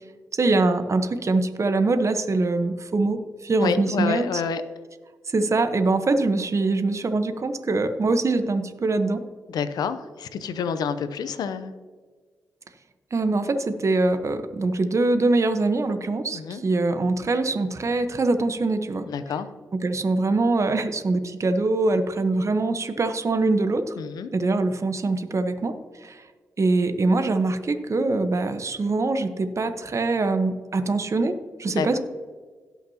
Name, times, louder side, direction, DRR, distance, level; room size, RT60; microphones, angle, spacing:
voice 1, 0.4-4.4 5.3-9.2 13.1-19.1 19.7-23.9 24.3-25.8 26.0-26.2 26.6-32.0, right 3 dB, 45° right, 8 dB, 1.0 m, -23 dB
voice 2, 3.6-4.6 9.5-11.7 16.3-16.6 19.1-19.5 24.0-24.3 31.8-32.0, left 6 dB, 80° left, 11 dB, 0.7 m, -28 dB
17.5 x 5.9 x 2.8 m, 1.5 s
supercardioid pair, 40°, 7 cm